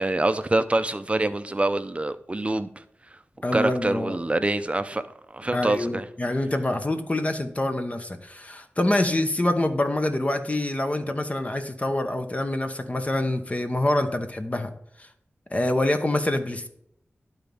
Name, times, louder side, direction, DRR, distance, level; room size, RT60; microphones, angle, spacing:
voice 1, 0.0-2.7 3.5-5.0 5.3-6.0, right 2 dB, 25° right, 11 dB, 0.6 m, -25 dB
voice 2, 3.4-4.2 5.5-14.7 15.0-15.1 15.5-16.7, left 1 dB, 30° left, 7 dB, 0.9 m, -26 dB
11.5 x 4.0 x 3.5 m, 0.72 s
wide cardioid pair, 60°, 5 cm